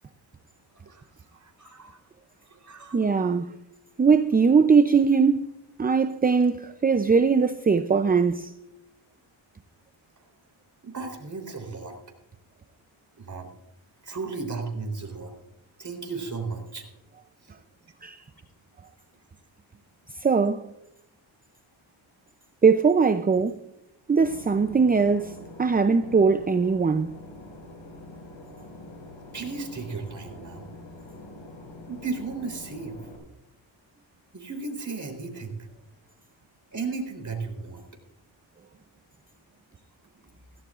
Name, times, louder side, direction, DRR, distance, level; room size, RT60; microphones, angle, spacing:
voice 1, 1.4-2.0 2.5-3.0 10.8-11.9 13.2-13.5 14.0-15.3 15.8-16.8 29.3-30.7 31.9-33.0 34.3-35.6 36.7-37.8, right 4 dB, 40° right, 3.8 m, -35 dB
voice 2, 2.9-3.6 4.0-5.5 5.8-8.5 18.0-18.2 20.1-20.7 22.6-23.6 24.1-27.1, right 5 dB, 20° right, 0.5 m, -21 dB
Boat Water vehicle / Engine, 24.2-33.2, left 2 dB, 75° left, 5.5 m, -45 dB
16.5 x 16.5 x 2.5 m
cardioid pair, 95°, 47 cm